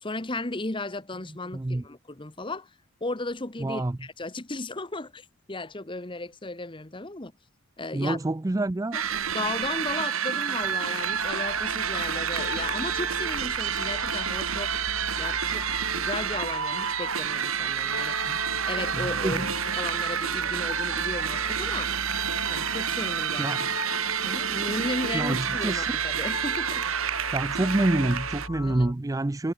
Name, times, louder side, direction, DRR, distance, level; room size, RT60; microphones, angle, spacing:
voice 1, 0.0-2.7 3.0-7.3 7.8-8.2 8.9-9.0 9.3-14.8 15.2-19.4 19.7-21.9 22.5-23.8 24.2-26.9 28.6-28.9, left 2 dB, 25° left, 1.3 m, -35 dB
voice 2, 1.5-1.8 3.6-4.0 7.9-9.0 18.3-18.4 19.0-19.5 23.4-23.7 25.1-25.9 27.3-29.5, right 2 dB, 15° right, 0.4 m, -27 dB
sound 1, 8.9-28.5, right 8 dB, 85° right, 1.5 m, -29 dB
sound 2, 10.6-28.9, left 3 dB, 80° left, 2.2 m, -39 dB
head